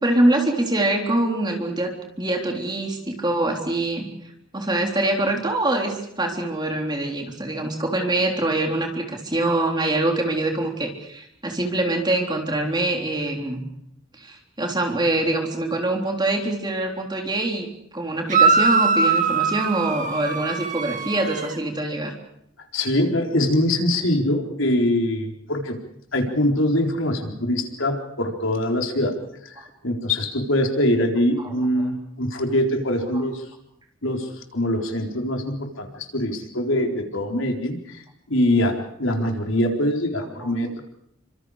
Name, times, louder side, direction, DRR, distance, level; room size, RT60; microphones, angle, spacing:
voice 1, 0.0-4.1 4.5-13.7 14.2-17.7 17.9-22.1 40.4-40.5, right 2 dB, 20° right, 2 dB, 3.7 m, -24 dB
sound 1, 18.3-21.6, right 4 dB, 40° right, 2.1 m, -21 dB
voice 2, 22.7-25.8 26.1-29.1 29.4-33.5 34.0-40.8, left 1 dB, 80° left, 3 dB, 4.1 m, -23 dB
29.5 x 26.0 x 5.0 m, 0.76 s
head